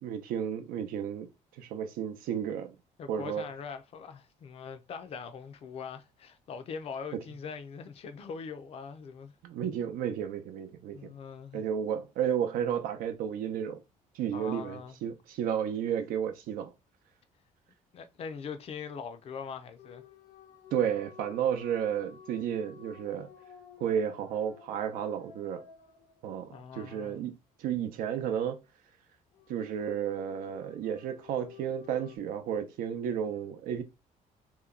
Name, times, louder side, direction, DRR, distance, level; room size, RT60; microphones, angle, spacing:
voice 1, 0.0-1.3 1.6-2.8 3.1-3.4 9.4-11.1 11.5-13.8 14.1-16.7 20.7-23.3 23.8-25.6 26.2-28.6 29.5-33.8, right 9 dB, 80° right, 0.6 m, -32 dB
voice 2, 3.0-9.3 10.9-11.6 14.3-15.0 17.9-20.0 26.5-27.2, left 6 dB, 45° left, 0.5 m, -42 dB
sound 1, 19.8-26.7 29.3-32.2, left 7 dB, 85° left, 0.8 m, -53 dB
2.9 x 2.2 x 3.6 m
cardioid pair, 130°, 14 cm